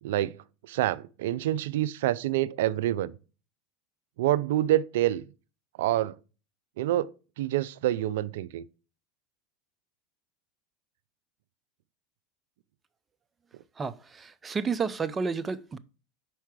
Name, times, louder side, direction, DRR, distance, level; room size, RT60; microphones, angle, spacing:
voice 1, 0.0-0.4 0.6-3.1 4.2-5.2 5.8-6.2 6.8-8.6, right 13 dB, 75° right, 0.4 m, -27 dB
voice 2, 13.8-15.8, right 5 dB, 25° right, 0.5 m, -31 dB
5.6 x 4.6 x 4.8 m
hypercardioid pair, 95°, 0 cm